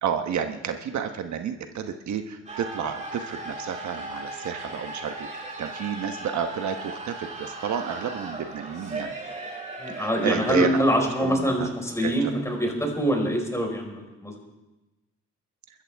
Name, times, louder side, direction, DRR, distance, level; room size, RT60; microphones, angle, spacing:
voice 1, 0.0-9.1 10.0-11.7 12.0-12.3, right 8 dB, 70° right, 6 dB, 1.2 m, -31 dB
sound 1, 2.5-13.4, right 2 dB, 25° right, 5.1 m, -38 dB
voice 2, 9.8-14.4, equal, 10° left, 1 dB, 4.8 m, -25 dB
23.5 x 13.5 x 3.5 m, 1.0 s
cardioid pair, 90°, 30 cm